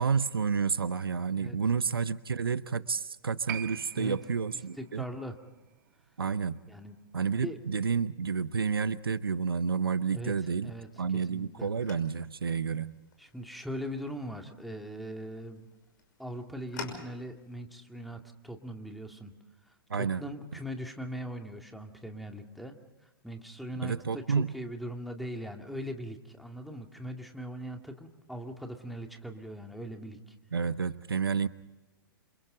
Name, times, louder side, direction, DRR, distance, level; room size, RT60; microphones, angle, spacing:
voice 1, 0.0-5.1 6.2-6.6 7.1-10.7 11.0-13.0 19.9-20.2 23.8-24.6 30.5-31.5, right 5 dB, 80° right, 16 dB, 0.8 m, -30 dB
Piano, 3.5-10.4 10.7-10.8, right 12 dB, 50° right, 1.5 m, -47 dB
voice 2, 4.8-5.4 6.7-7.0 7.4-7.6 10.1-10.3 10.6-11.7 13.2-15.7 16.2-19.3 19.9-22.8 23.2-30.3, equal, ahead, 4 dB, 2.3 m, -40 dB
sound 1, 10.3-17.5, left 5 dB, 55° left, 5.8 m, -50 dB
29.0 x 27.0 x 3.9 m, 1.0 s
figure-of-eight pair, 110°, 12 cm